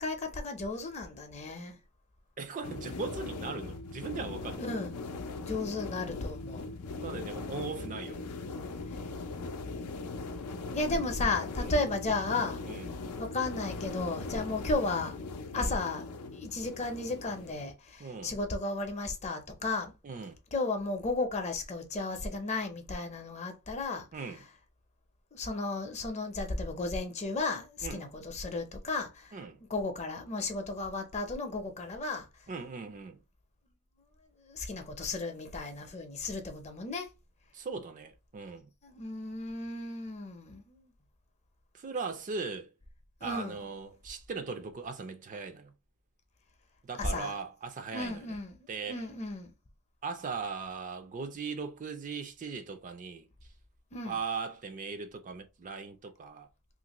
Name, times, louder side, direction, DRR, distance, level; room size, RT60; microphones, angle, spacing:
voice 1, 0.0-1.8 4.6-6.7 8.9-9.0 10.7-12.6 13.2-15.2 15.5-16.1 16.3-19.9 20.5-24.1 25.3-29.4 29.7-32.3 34.4-37.1 38.8-40.9 43.2-43.6 47.0-47.3 47.9-48.6 48.9-49.5 53.9-54.2, left 3 dB, 30° left, 0.6 m, -34 dB
voice 2, 2.4-4.7 7.0-8.4 11.6-11.8 12.6-12.9 15.5-15.8 18.0-18.4 20.0-20.3 24.1-24.4 27.8-28.0 29.3-29.6 32.5-33.2 37.5-38.7 41.7-42.7 43.2-45.7 46.8-48.4 48.7-49.1 50.0-53.3 54.0-56.5, right 4 dB, 35° right, 0.4 m, -39 dB
sound 1, 2.6-17.7, left 3 dB, 80° left, 0.5 m, -40 dB
2.9 x 2.5 x 2.9 m
head